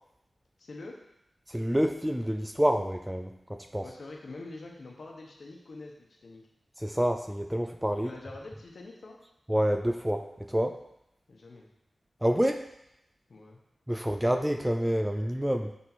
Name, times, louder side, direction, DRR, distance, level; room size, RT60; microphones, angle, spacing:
voice 1, 0.6-1.0 3.8-6.4 8.0-9.2 11.3-11.7 13.3-13.6, left 2 dB, 70° left, 0 dB, 1.1 m, -45 dB
voice 2, 1.5-3.9 6.8-8.1 9.5-10.8 12.2-12.6 13.9-15.7, equal, 10° right, 6 dB, 0.4 m, -28 dB
6.1 x 4.4 x 4.1 m, 0.83 s
wide cardioid pair, 85°, 0 cm